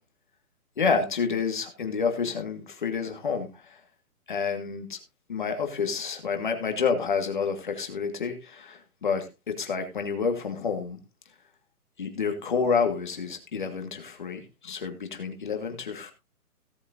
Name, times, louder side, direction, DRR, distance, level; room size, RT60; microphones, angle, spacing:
voice 1, 0.8-3.8 4.3-5.0 5.3-11.0 12.0-16.1, left 5 dB, 30° left, 1.9 m, -29 dB
17.0 x 8.6 x 2.7 m
hypercardioid pair, 180°, 46 cm